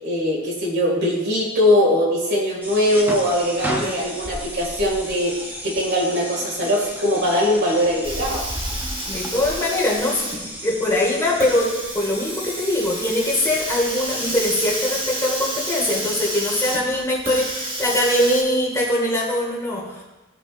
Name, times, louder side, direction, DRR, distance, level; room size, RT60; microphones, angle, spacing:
voice 1, 0.0-8.5, left 1 dB, 55° right, -3 dB, 2.5 m, -21 dB
sound 1, 2.6-15.0, equal, 10° right, 0.9 m, -34 dB
Hiss, 8.0-18.4, right 1 dB, 25° right, 1.6 m, -30 dB
voice 2, 9.1-20.0, left 1 dB, 15° left, -5 dB, 2.2 m, -22 dB
15.5 x 5.4 x 2.6 m, 1.1 s
head